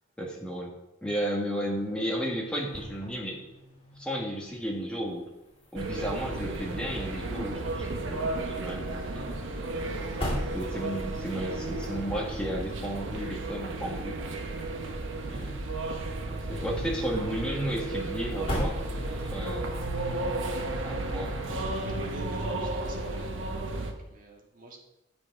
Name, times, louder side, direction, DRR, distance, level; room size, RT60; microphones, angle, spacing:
voice 1, 0.2-0.7 1.0-3.4 4.0-5.3 5.7-9.4 10.5-14.2 15.2-15.6 16.3-19.7 20.9-21.8, equal, 5° left, -2 dB, 1.5 m, -34 dB
sound 1, 1.4-19.5, equal, 25° left, 2.3 m, -42 dB
sound 2, 5.8-23.9, right 2 dB, 65° right, 1.0 m, -33 dB
voice 2, 21.8-24.8, right 1 dB, 40° right, -1 dB, 1.7 m, -45 dB
9.9 x 6.1 x 4.8 m, 0.95 s
head